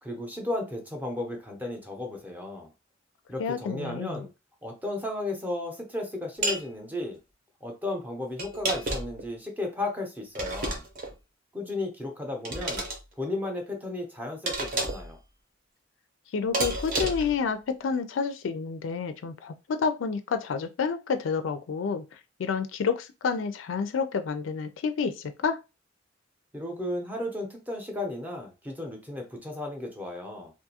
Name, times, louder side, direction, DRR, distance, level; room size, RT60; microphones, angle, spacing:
voice 1, 0.0-2.7 3.3-4.3 4.6-7.2 7.6-10.8 11.5-12.9 13.2-15.2 26.5-30.5, left 2 dB, 10° right, 0.6 m, -34 dB
voice 2, 3.4-4.2 16.3-22.0 22.4-25.6, left 5 dB, 80° left, 0.4 m, -29 dB
sound 1, 6.4-6.7 8.4-9.2 10.3-11.1 12.4-13.0 14.5-15.1 16.5-17.3, right 2 dB, 45° right, 0.8 m, -30 dB
2.5 x 2.4 x 2.8 m
head